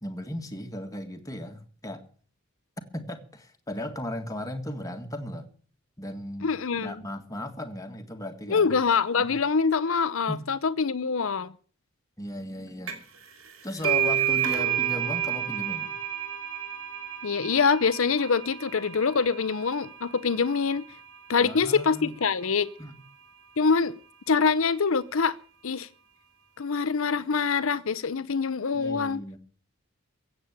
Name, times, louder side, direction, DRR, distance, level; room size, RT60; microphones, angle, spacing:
voice 1, 0.0-2.0 2.9-5.5 6.0-6.5 6.7-8.7 9.2-9.3 10.3-10.4 12.2-13.0 13.6-16.0 21.4-22.1 22.8-23.0 28.7-29.4, equal, 15° left, 1.7 m, -36 dB
voice 2, 6.4-7.0 8.5-11.5 17.2-20.8 21.3-22.7 23.6-24.0 24.3-25.4 25.6-25.9 26.6-29.2, left 5 dB, 65° left, 0.7 m, -25 dB
sound 1, 12.9-13.2 13.5-20.8, right 9 dB, 65° right, 3.0 m, -30 dB
15.5 x 8.1 x 8.7 m
head